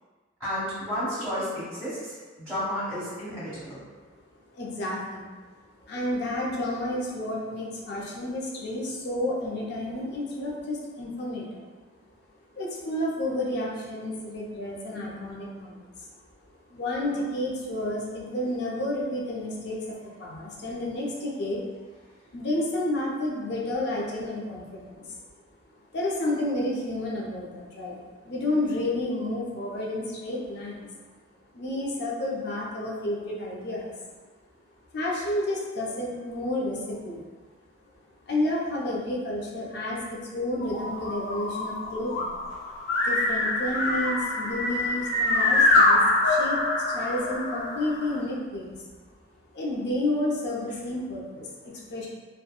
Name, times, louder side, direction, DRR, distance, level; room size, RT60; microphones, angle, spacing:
voice 1, 0.4-2.2 2.4-3.8, equal, ahead, -14 dB, 1.3 m, -31 dB
voice 2, 4.5-5.3 5.8-11.6 12.6-16.1 16.7-21.6 22.3-25.2 25.9-30.9 31.5-34.0 34.9-37.2 38.3-42.4 43.0-48.8 49.5-52.1, left 1 dB, 55° left, -4 dB, 0.5 m, -31 dB
sound 1, 40.6-48.2, left 2 dB, 90° left, 0.8 m, -25 dB
2.9 x 2.1 x 2.2 m, 1.4 s
head